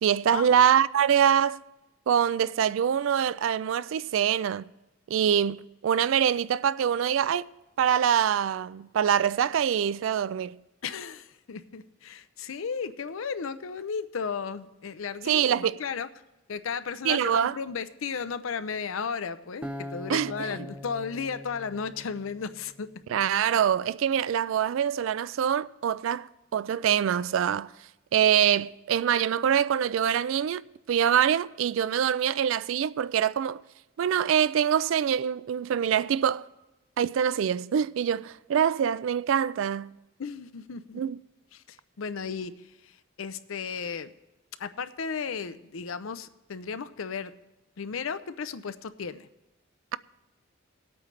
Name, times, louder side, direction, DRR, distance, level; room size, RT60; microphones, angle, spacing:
voice 1, 0.0-1.6 2.1-4.7 5.1-7.4 7.8-10.6 15.3-15.8 17.0-17.5 20.1-20.7 23.1-27.7 28.1-30.6 30.9-33.6 34.0-36.5 37.0-39.9 40.9-41.2, right 8 dB, 75° right, 0.3 m, -24 dB
voice 2, 10.8-16.1 16.5-22.9 40.2-41.0 41.5-44.1 44.6-47.3 47.8-49.3, left 6 dB, 80° left, 0.6 m, -35 dB
Acoustic guitar, 19.6-22.8, left 1 dB, 5° right, 0.5 m, -42 dB
19.5 x 8.5 x 3.2 m
head